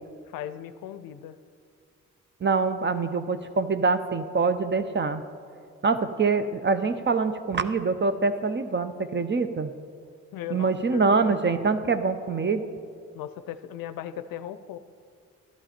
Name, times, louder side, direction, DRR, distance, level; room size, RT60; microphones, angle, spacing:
voice 1, 0.2-1.4 10.3-11.4 11.9-12.0 13.1-14.8, left 11 dB, 65° left, 12 dB, 0.6 m, -38 dB
voice 2, 2.4-5.2 5.8-9.7 10.5-12.6, right 4 dB, 30° right, 11 dB, 0.8 m, -25 dB
12.5 x 11.5 x 4.4 m, 2.2 s
hypercardioid pair, 45°, 36 cm